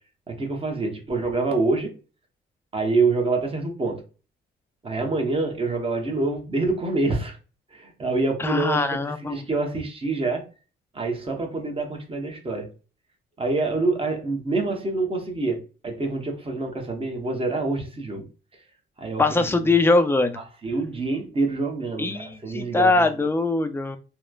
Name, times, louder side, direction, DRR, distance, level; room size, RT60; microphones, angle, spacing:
voice 1, 0.3-1.9 2.7-4.0 4.8-7.4 7.7-9.0 9.3-10.5 10.9-12.7 13.4-18.3 19.0-19.6 20.6-23.1, right 3 dB, 30° right, 0.9 m, -26 dB
voice 2, 8.4-9.5 19.2-20.4 22.0-24.0, left 3 dB, 10° left, 0.4 m, -22 dB
3.1 x 2.1 x 2.3 m
cardioid pair, 90°, 20 cm